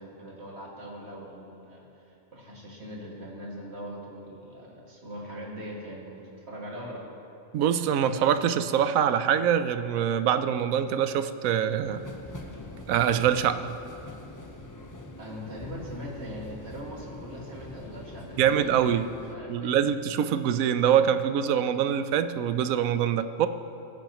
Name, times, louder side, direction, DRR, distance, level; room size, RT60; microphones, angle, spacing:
voice 1, 0.0-7.0 15.2-18.9 19.3-19.9, equal, 50° right, -3 dB, 2.4 m, -41 dB
voice 2, 7.5-12.0 12.9-13.8 18.4-19.1 19.5-23.5, right 9 dB, 85° right, 11 dB, 1.0 m, -24 dB
sound 1, 11.8-19.3, left 1 dB, 20° left, 0.5 m, -43 dB
20.5 x 10.5 x 3.0 m, 2.8 s
omnidirectional pair, 1.4 m